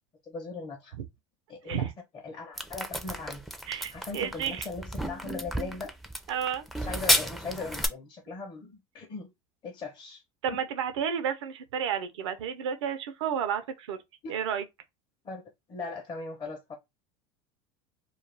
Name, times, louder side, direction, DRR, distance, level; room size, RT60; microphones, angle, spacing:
voice 1, 0.3-0.9 1.5-1.9 2.2-3.4 3.9-5.9 6.8-9.3 9.6-10.2 14.2-14.3 15.2-15.4 15.7-16.7, left 3 dB, 30° left, 0.7 m, -39 dB
sound 1, 2.6-7.9, equal, ahead, 0.4 m, -31 dB
voice 2, 3.7-4.7 6.3-6.6 10.4-14.0 14.3-14.6, right 8 dB, 90° right, 0.6 m, -31 dB
2.4 x 2.3 x 3.2 m
supercardioid pair, 100°, 14 cm